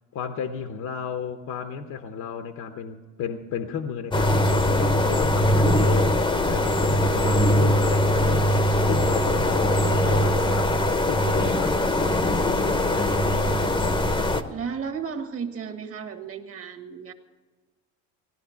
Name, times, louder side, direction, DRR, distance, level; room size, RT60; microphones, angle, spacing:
voice 1, 0.1-8.5 8.8-13.4, left 6 dB, 55° left, 6 dB, 0.9 m, -33 dB
sound 1, 4.1-14.4, left 1 dB, 15° left, 0.9 m, -21 dB
voice 2, 14.5-17.1, right 6 dB, 40° right, 7 dB, 1.6 m, -34 dB
17.5 x 11.5 x 5.7 m, 1.3 s
cardioid pair, 120°, 36 cm